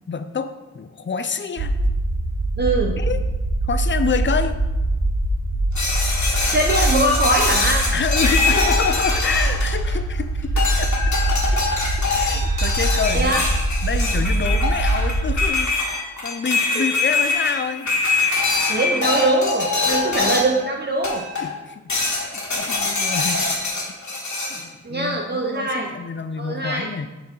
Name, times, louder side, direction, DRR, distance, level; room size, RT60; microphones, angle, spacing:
voice 1, 0.1-1.7 3.0-3.2 3.6-4.6 7.9-10.9 11.5-11.6 12.1-13.4 13.8-15.8 16.2-18.0 21.4-23.8 24.5-27.1, left 5 dB, 40° left, 10 dB, 0.5 m, -27 dB
sound 1, 1.6-15.5, right 1 dB, 65° right, 0.9 m, -23 dB
voice 2, 2.6-3.0 6.5-7.8 13.1-13.4 18.7-21.2 24.8-25.9 26.4-26.9, right 2 dB, 35° right, -1 dB, 0.8 m, -22 dB
sound 2, 5.8-10.1 10.6-20.6 21.0-21.5 21.9-24.6, left 3 dB, 80° left, 1.5 m, -23 dB
6.5 x 4.4 x 5.3 m, 1.1 s
wide cardioid pair, 65°, 29 cm